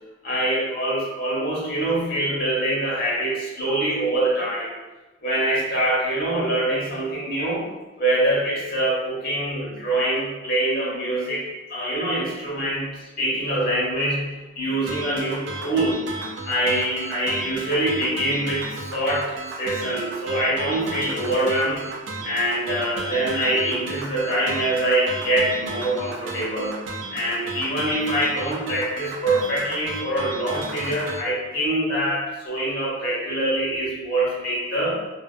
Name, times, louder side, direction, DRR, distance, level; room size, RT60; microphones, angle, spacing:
voice 1, 0.2-4.7 5.2-7.6 8.0-11.4 11.7-16.1 16.4-21.9 22.2-26.8 27.1-34.9, right 1 dB, 50° left, -7 dB, 0.9 m, -24 dB
sound 1, 14.9-31.2, right 3 dB, 70° right, 0.4 m, -34 dB
2.4 x 2.3 x 2.4 m, 1.1 s
head